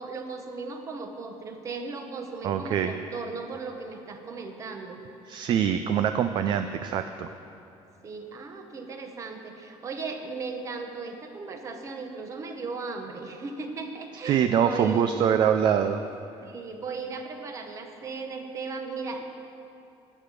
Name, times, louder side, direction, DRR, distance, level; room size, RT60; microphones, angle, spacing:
voice 1, 0.0-5.0 8.0-15.1 16.4-19.2, right 4 dB, 30° right, 5 dB, 1.0 m, -37 dB
voice 2, 2.4-2.9 5.3-7.3 14.2-16.0, right 8 dB, 45° right, 9 dB, 0.4 m, -24 dB
11.5 x 9.3 x 6.7 m, 2.8 s
cardioid pair, 175°, 11 cm